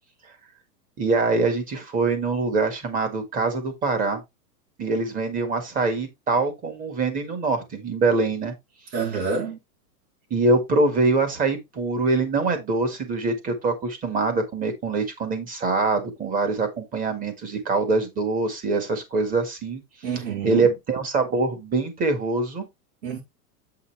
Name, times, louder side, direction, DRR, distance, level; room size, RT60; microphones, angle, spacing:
voice 1, 1.0-4.2 4.8-8.5 10.3-19.8 20.4-22.6, right 3 dB, 15° right, 1.9 m, -24 dB
voice 2, 8.9-9.6 20.0-20.7 23.0-23.2, right 5 dB, 85° right, 4.4 m, -28 dB
8.4 x 5.6 x 3.4 m
supercardioid pair, 165°, 48 cm